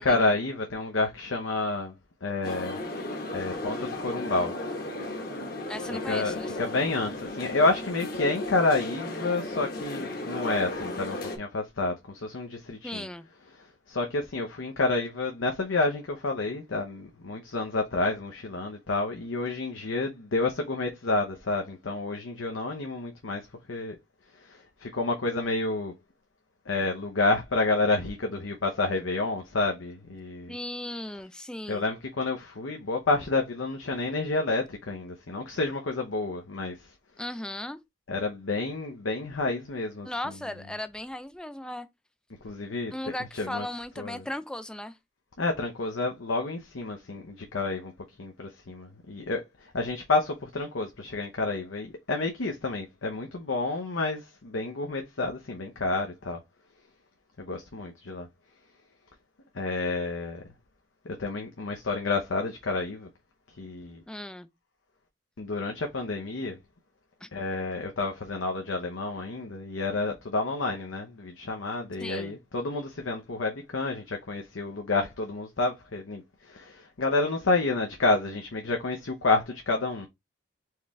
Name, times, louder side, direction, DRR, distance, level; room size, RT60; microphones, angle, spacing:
voice 1, 0.0-1.9 2.2-2.8 3.3-4.5 5.9-13.0 13.9-23.4 23.7-24.0 24.5-25.9 26.7-30.5 31.7-36.8 38.1-40.1 42.4-42.9 43.4-43.7 44.0-44.2 45.4-47.9 48.2-56.4 57.4-58.3 59.5-60.4 61.0-63.1 63.6-64.0 65.4-66.6 67.3-80.1, left 3 dB, 85° left, 0.8 m, -29 dB
sound 1, 2.4-11.4, left 1 dB, 50° left, 1.1 m, -35 dB
voice 2, 5.7-6.6 12.8-13.3 30.5-31.9 37.2-37.8 40.0-41.9 42.9-45.0 64.1-64.5 67.2-67.3 72.0-72.3, left 1 dB, 5° left, 0.3 m, -37 dB
4.7 x 3.5 x 3.1 m
head